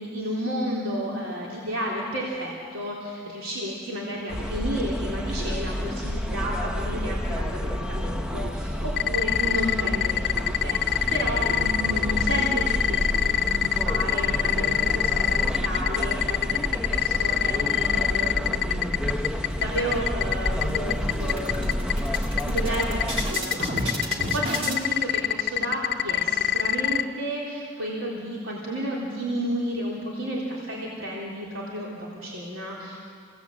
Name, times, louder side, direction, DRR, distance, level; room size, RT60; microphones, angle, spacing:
voice 1, 0.0-21.9 22.5-33.0, equal, 85° right, -4 dB, 3.6 m, -32 dB
sound 1, 4.3-23.3, equal, 5° right, 0.8 m, -29 dB
sound 2, 9.0-27.0, left 11 dB, 50° left, 0.8 m, -23 dB
sound 3, 19.5-20.2 20.6-20.7 21.0-24.8, equal, 30° right, 3.0 m, -32 dB
30.0 x 17.5 x 8.5 m, 2.3 s
head